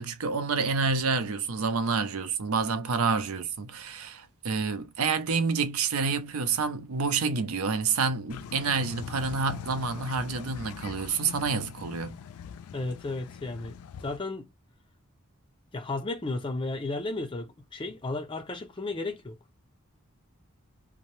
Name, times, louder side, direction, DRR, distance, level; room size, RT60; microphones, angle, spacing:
voice 1, 0.0-12.2, right 5 dB, 80° right, 0.5 m, -28 dB
sound 1, 8.3-14.2, left 7 dB, 85° left, 0.3 m, -42 dB
voice 2, 12.7-13.8 14.0-14.5 15.7-19.4, left 2 dB, 25° left, 0.5 m, -33 dB
2.6 x 2.0 x 3.0 m
head